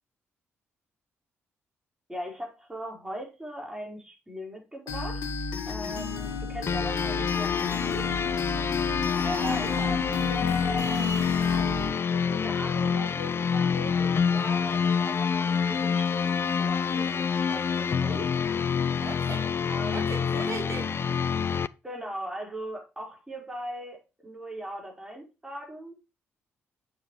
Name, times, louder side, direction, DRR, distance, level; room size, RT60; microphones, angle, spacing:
voice 1, 2.1-5.3 5.7-8.1 9.1-18.3 19.7-20.4 21.8-26.0, equal, 10° right, 4.9 m, -39 dB
sound 1, 4.9-11.9, left 4 dB, 65° left, 1.9 m, -33 dB
sound 2, 6.7-21.7, left 6 dB, 35° left, 0.4 m, -27 dB
voice 2, 9.2-10.0 19.0-19.5 19.9-20.9, right 5 dB, 45° right, 2.1 m, -38 dB
8.2 x 7.0 x 3.3 m
figure-of-eight pair, 40°, 7 cm